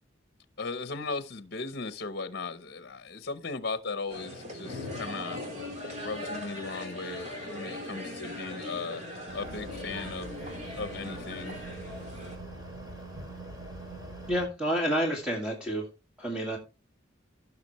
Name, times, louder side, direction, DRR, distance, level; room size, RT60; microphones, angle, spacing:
voice 1, 0.6-5.4 6.0-9.0 9.3-10.4 10.8-11.6, left 4 dB, 55° left, 0.9 m, -37 dB
sound 1, 4.1-12.4, left 1 dB, 35° right, 3.6 m, -40 dB
sound 2, 9.3-14.5, right 2 dB, 20° right, 3.0 m, -43 dB
voice 2, 14.3-15.9 16.2-16.6, equal, 5° right, 2.0 m, -29 dB
16.0 x 6.0 x 3.1 m
head